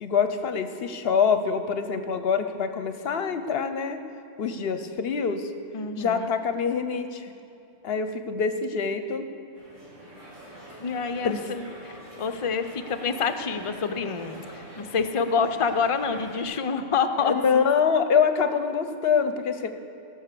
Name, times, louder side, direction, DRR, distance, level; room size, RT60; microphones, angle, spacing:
voice 1, 0.0-4.0 4.4-5.5 6.0-7.3 7.8-9.3 11.2-11.4 17.2-19.7, left 6 dB, 60° left, 9 dB, 0.8 m, -25 dB
voice 2, 5.7-6.3 10.8-17.3, left 5 dB, 40° left, 8 dB, 0.5 m, -27 dB
sound 1, 9.5-16.4, right 1 dB, 85° right, 3.5 m, -45 dB
17.5 x 6.3 x 6.7 m, 2.7 s
omnidirectional pair, 1.3 m